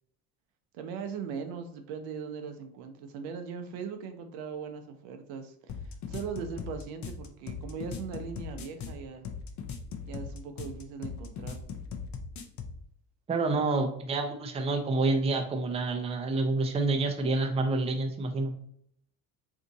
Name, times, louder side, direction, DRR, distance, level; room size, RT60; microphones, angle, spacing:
voice 1, 0.7-9.3 10.0-11.6, right 6 dB, 75° right, 7 dB, 0.7 m, -39 dB
sound 1, 5.7-12.8, left 6 dB, 40° left, 0.6 m, -39 dB
voice 2, 13.3-18.5, right 3 dB, 15° right, 4 dB, 0.5 m, -28 dB
2.7 x 2.5 x 3.9 m, 0.68 s
supercardioid pair, 80°, 46 cm